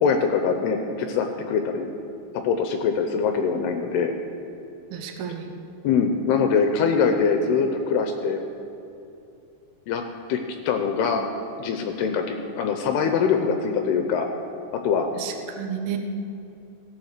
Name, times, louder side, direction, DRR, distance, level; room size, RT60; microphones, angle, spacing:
voice 1, 0.0-1.9 2.3-4.1 5.8-8.4 9.9-10.0 10.3-10.4 10.7-11.2 11.6-14.3 14.7-15.1, left 6 dB, 80° left, 5 dB, 2.5 m, -23 dB
voice 2, 4.9-5.5 15.1-16.0, right 8 dB, 70° right, 4 dB, 2.6 m, -32 dB
16.5 x 7.2 x 6.6 m, 2.7 s
omnidirectional pair, 5.1 m